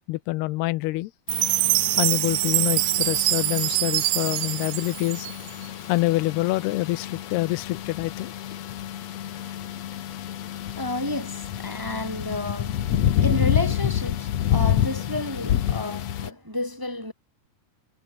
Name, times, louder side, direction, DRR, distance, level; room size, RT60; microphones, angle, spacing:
voice 1, 0.1-1.1 2.0-5.3 5.9-8.3, left 19 dB, 85° left, 2.7 m, -26 dB
sound 1, 1.3-16.3, left 11 dB, 60° left, 1.9 m, -28 dB
Chime, 1.3-5.7, right 19 dB, 90° right, 2.7 m, -24 dB
voice 2, 10.7-17.1, left 1 dB, 5° right, 2.4 m, -31 dB
omnidirectional pair, 4.7 m